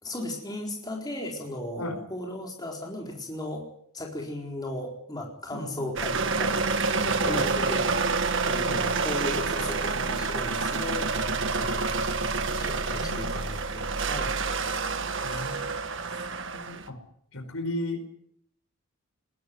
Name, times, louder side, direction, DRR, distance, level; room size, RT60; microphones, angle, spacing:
voice 1, 0.0-3.7 3.9-6.5 7.0-7.9 8.4-11.9 12.5-14.4 15.2-15.6, left 1 dB, 20° left, 0 dB, 4.4 m, -36 dB
voice 2, 5.5-5.9 7.2-7.4 8.6-8.8 11.7-11.8 12.9-13.6 15.2-15.8 16.5-17.0 17.3-18.1, left 1 dB, 75° left, 6 dB, 4.7 m, -35 dB
sound 1, 6.0-16.9, right 4 dB, 60° right, 1.5 m, -28 dB
20.5 x 17.0 x 9.6 m, 0.68 s
head